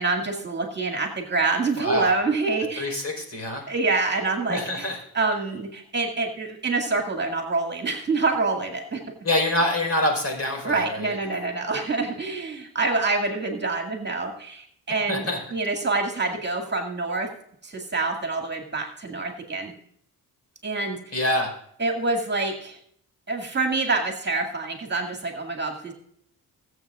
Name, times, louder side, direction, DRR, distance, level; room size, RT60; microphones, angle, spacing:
voice 1, 0.0-3.0 3.7-9.0 10.6-17.3 17.6-19.7 20.6-21.2 21.8-22.8 23.3-25.9, right 3 dB, 30° right, 2 dB, 2.1 m, -26 dB
voice 2, 1.8-2.1 2.8-3.6 4.5-5.0 9.2-11.1 15.1-15.4 21.1-21.5, left 1 dB, 40° left, 2 dB, 4.7 m, -25 dB
21.5 x 7.9 x 2.5 m, 0.66 s
cardioid pair, 100°, 36 cm